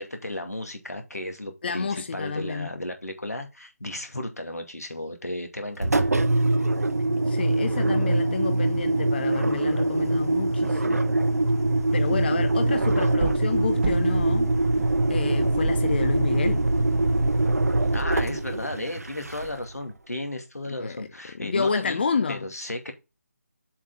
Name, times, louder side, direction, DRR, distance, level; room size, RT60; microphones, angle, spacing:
voice 1, 0.0-6.1 17.9-22.0 22.3-22.9, left 1 dB, 85° left, 2.3 m, -34 dB
voice 2, 1.6-2.7 7.3-11.0 11.9-14.5 15.1-16.7 20.8-21.0 21.4-22.5, left 5 dB, 40° left, 0.5 m, -29 dB
Engine, 5.8-19.8, right 2 dB, 75° right, 0.9 m, -23 dB
sound 1, 11.3-16.1, right 4 dB, 45° right, 1.3 m, -37 dB
7.3 x 4.7 x 3.8 m
figure-of-eight pair, 155°, 8 cm